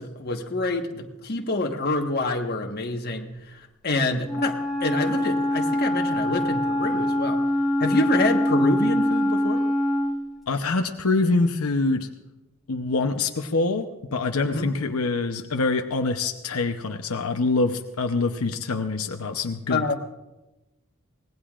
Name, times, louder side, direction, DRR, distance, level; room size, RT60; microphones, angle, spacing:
voice 1, 0.0-7.4 7.8-9.6 14.4-14.7 19.7-19.9, left 2 dB, 45° left, 2 dB, 1.4 m, -27 dB
Wind instrument woodwind instrument, 4.2-10.3, left 1 dB, ahead, 3.8 m, -24 dB
voice 2, 10.5-12.1 12.7-19.9, left 3 dB, 85° left, 4 dB, 0.8 m, -25 dB
25.0 x 19.5 x 2.5 m, 1.0 s
head